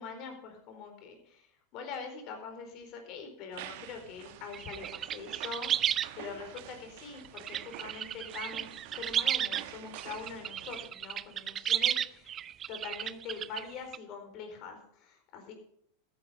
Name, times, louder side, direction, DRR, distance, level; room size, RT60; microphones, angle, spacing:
voice 1, 0.0-8.7 8.9-12.4 12.7-15.5, left 5 dB, 50° left, 4 dB, 4.2 m, -44 dB
sound 1, 3.5-10.9, right 13 dB, 60° right, 1.1 m, -48 dB
sound 2, 4.5-6.1 6.6-6.7 7.2-9.6 10.0-14.0, right 10 dB, 35° right, 0.4 m, -33 dB
13.5 x 9.7 x 5.5 m, 0.69 s
hypercardioid pair, 95°, 0 cm